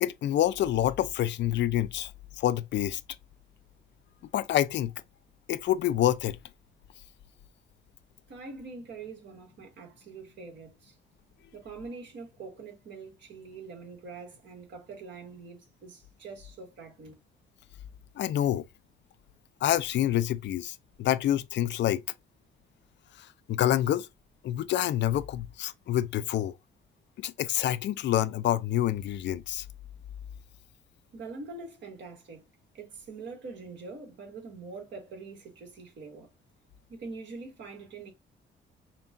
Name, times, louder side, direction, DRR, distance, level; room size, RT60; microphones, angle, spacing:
voice 1, 0.0-2.1 2.4-3.0 4.3-4.9 5.5-6.4 18.2-18.6 19.6-22.0 23.2-24.1 24.4-26.5 27.2-29.6, left 12 dB, 65° left, 0.4 m, -27 dB
voice 2, 8.3-11.0 11.5-17.1 31.1-32.4 32.7-36.3 36.9-38.1, right 4 dB, 65° right, 1.7 m, -44 dB
5.7 x 2.3 x 2.5 m
cardioid pair, 90°, 20 cm